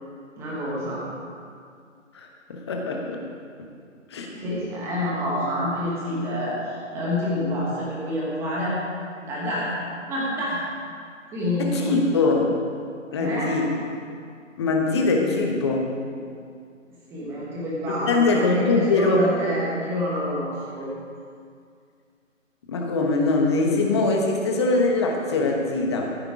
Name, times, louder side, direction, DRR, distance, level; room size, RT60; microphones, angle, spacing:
voice 1, 0.4-1.0 4.3-8.8 9.2-9.7 10.1-10.6 11.3-11.9 13.2-13.6 17.1-20.9, left 1 dB, 5° right, -6 dB, 1.4 m, -27 dB
voice 2, 2.1-3.2 4.1-4.3 11.6-12.6 13.1-13.7 14.6-15.9 17.9-19.3 22.7-26.1, left 3 dB, 20° left, 1 dB, 1.1 m, -22 dB
14.5 x 8.6 x 4.8 m, 2.3 s
figure-of-eight pair, 155°, 39 cm